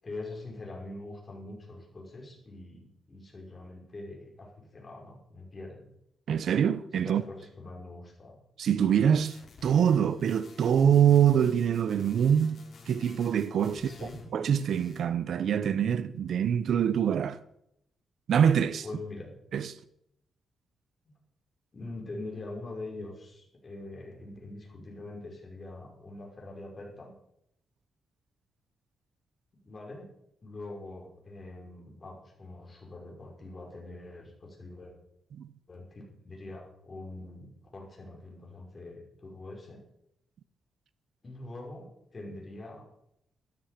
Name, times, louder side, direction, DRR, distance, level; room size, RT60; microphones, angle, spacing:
voice 1, 0.0-5.9 7.0-8.4 13.8-14.2 18.8-19.4 21.7-27.2 29.6-30.1 30.4-34.9 35.7-39.8 41.2-42.9, left 2 dB, 35° left, 5.5 m, -43 dB
voice 2, 6.3-7.2 8.6-17.4 18.3-18.8 19.5-19.8 35.3-35.5, right 8 dB, 70° right, 0.7 m, -25 dB
sound 1, 9.1-14.3 14.5-15.1, left 4 dB, 55° left, 4.5 m, -52 dB
13.0 x 13.0 x 5.1 m
cardioid pair, 100°, 0 cm